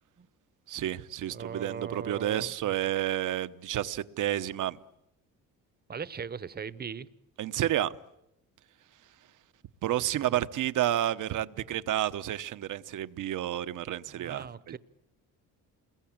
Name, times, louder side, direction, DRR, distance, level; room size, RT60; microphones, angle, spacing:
voice 1, 0.7-4.8 7.4-7.9 9.8-14.8, right 12 dB, 70° right, 1.0 m, -30 dB
voice 2, 1.3-2.9 5.9-7.1 10.3-10.4 14.1-14.8, right 6 dB, 30° right, 1.0 m, -39 dB
29.0 x 21.5 x 8.8 m
cardioid pair, 120°, 33 cm